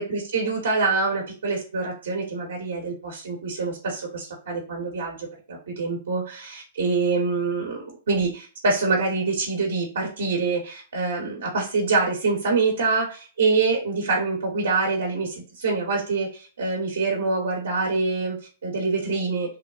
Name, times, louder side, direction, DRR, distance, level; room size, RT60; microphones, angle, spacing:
voice 1, 0.0-19.6, right 4 dB, 80° right, -2 dB, 1.0 m, -25 dB
3.2 x 2.2 x 2.4 m, 0.35 s
hypercardioid pair, 130°, 0 cm